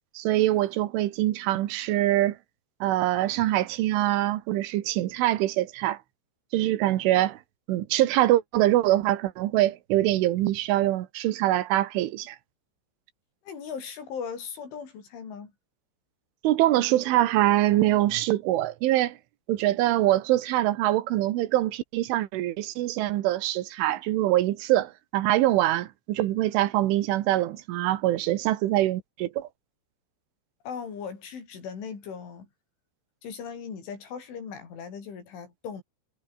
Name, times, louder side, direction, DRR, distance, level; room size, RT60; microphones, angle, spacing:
voice 1, 0.2-2.4 2.8-6.0 6.5-7.4 7.7-12.4 16.4-19.2 19.5-29.5, right 15 dB, 85° right, 3.9 m, -24 dB
voice 2, 13.5-15.5 30.7-32.5 33.2-35.8, left 6 dB, 80° left, 7.8 m, -38 dB
omnidirectional pair, 5.4 m